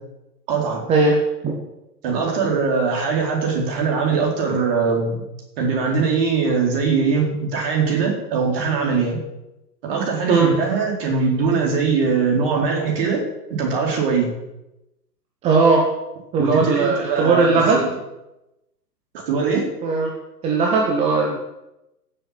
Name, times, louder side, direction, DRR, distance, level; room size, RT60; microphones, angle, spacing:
voice 1, 0.5-0.8 2.0-5.2 5.6-9.2 9.8-14.3 16.4-17.9 19.3-19.7, right 5 dB, 35° right, 0 dB, 4.4 m, -21 dB
voice 2, 15.4-15.9 16.3-17.8 19.8-20.1 20.4-21.4, right 4 dB, 10° right, 0 dB, 1.1 m, -18 dB
16.0 x 7.8 x 7.4 m, 0.93 s
figure-of-eight pair, 125°, 49 cm